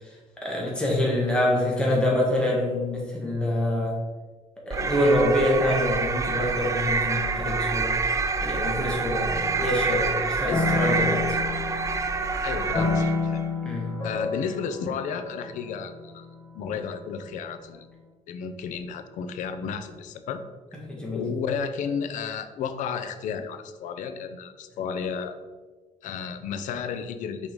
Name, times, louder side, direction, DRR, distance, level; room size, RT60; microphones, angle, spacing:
voice 1, 0.0-4.0 4.6-7.9 8.4-11.4 13.6-13.9 20.9-21.2, left 1 dB, 5° left, -4 dB, 1.6 m, -26 dB
sound 1, 4.7-13.3, right 4 dB, 25° right, 0.5 m, -27 dB
sound 2, 9.3-12.2 12.7-16.6, left 4 dB, 35° left, 1.2 m, -29 dB
voice 2, 12.4-13.4 14.0-16.3 16.5-17.9 18.3-20.4 21.1-25.4 26.0-27.5, left 6 dB, 85° left, 9 dB, 0.6 m, -32 dB
5.5 x 5.1 x 4.7 m, 1.3 s
cardioid pair, 140°, 13 cm